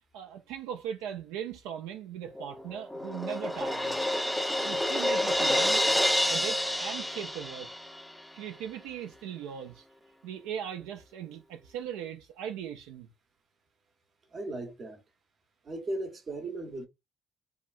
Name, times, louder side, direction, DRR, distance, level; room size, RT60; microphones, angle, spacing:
voice 1, 0.1-3.9 4.6-5.8 6.3-7.7 8.3-9.8 10.2-13.1, right 9 dB, 85° right, 0.3 m, -39 dB
Crash cymbal, 2.4-8.1, left 1 dB, 5° left, 0.3 m, -28 dB
voice 2, 14.3-15.0 15.6-16.9, right 2 dB, 45° right, 0.7 m, -36 dB
2.7 x 2.2 x 2.3 m
supercardioid pair, 75°, 0 cm